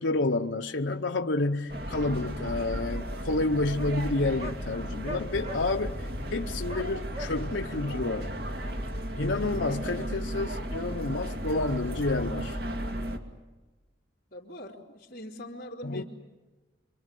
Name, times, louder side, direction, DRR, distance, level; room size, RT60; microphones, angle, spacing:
voice 1, 0.0-6.0 6.3-8.3 9.2-12.6 15.8-16.0, left 2 dB, 70° left, 0.9 m, -29 dB
sound 1, 0.9-1.0 1.9-2.0 2.2-2.3 2.6-2.7 3.7-4.0 4.4-4.6 5.0-5.6 6.7-7.3, equal, 35° right, 2.0 m, -39 dB
sound 2, 1.7-13.2, equal, 55° right, 2.5 m, -35 dB
voice 2, 14.3-16.0, left 1 dB, 45° left, 3.3 m, -42 dB
27.0 x 25.0 x 8.4 m
head